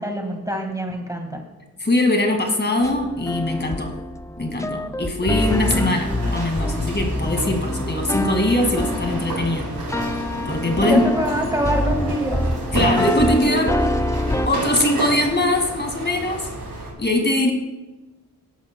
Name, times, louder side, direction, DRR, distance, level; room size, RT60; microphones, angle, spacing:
voice 1, 0.0-1.4 10.8-12.5 12.7-13.5, right 1 dB, 10° right, 2 dB, 1.8 m, -25 dB
voice 2, 1.8-4.0 4.4-9.7 10.5-11.1 12.7-13.7 14.5-16.5 17.0-17.5, left 1 dB, 30° left, 2 dB, 2.1 m, -22 dB
sound 1, 2.8-14.5, left 1 dB, 10° left, 0.5 m, -25 dB
sound 2, 5.4-16.9, right 2 dB, 75° right, 4.2 m, -31 dB
17.5 x 11.5 x 2.2 m, 1.1 s
wide cardioid pair, 75°, 36 cm